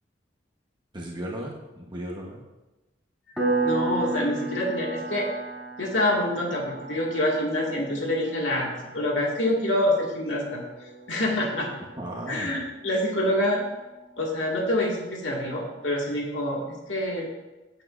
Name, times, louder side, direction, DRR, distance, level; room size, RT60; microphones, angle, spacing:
voice 1, 0.9-2.4 12.0-12.7, right 1 dB, 25° right, -2 dB, 1.1 m, -36 dB
Piano, 3.4-13.7, right 3 dB, ahead, 2.7 m, -34 dB
voice 2, 3.6-5.3 5.8-8.7 8.9-10.6 11.1-11.7 12.3-13.6 14.2-17.3, left 1 dB, 85° left, -2 dB, 2.1 m, -26 dB
15.5 x 8.4 x 2.6 m, 1.1 s
head